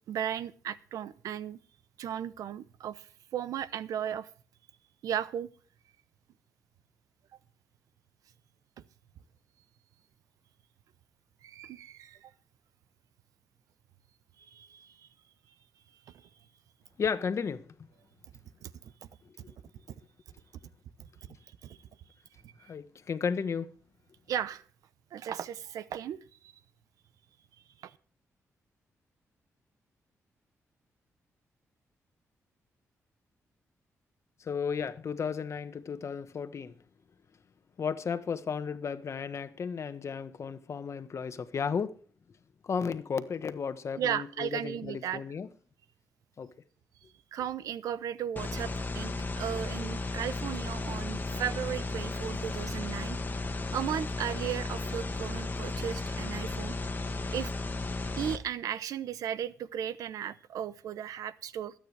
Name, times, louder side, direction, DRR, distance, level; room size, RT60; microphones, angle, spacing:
voice 1, 0.1-1.6 2.0-4.3 5.0-5.5 11.4-12.3 14.4-15.1 16.1-16.2 18.6-18.9 21.6-21.8 22.4-22.5 24.3-24.6 25.1-26.5 27.8-28.0 44.0-45.2 47.3-53.2 53.7-57.5 58.2-61.7, right 9 dB, 90° right, 0.8 m, -36 dB
voice 2, 17.0-17.6 19.2-19.5 22.6-23.7 34.4-36.7 37.8-42.0 42.6-45.5 46.4-46.5, left 6 dB, 55° left, 1.3 m, -34 dB
sound 1, 48.4-58.4, left 3 dB, 35° left, 1.7 m, -34 dB
21.5 x 9.1 x 3.4 m
cardioid pair, 75°, 6 cm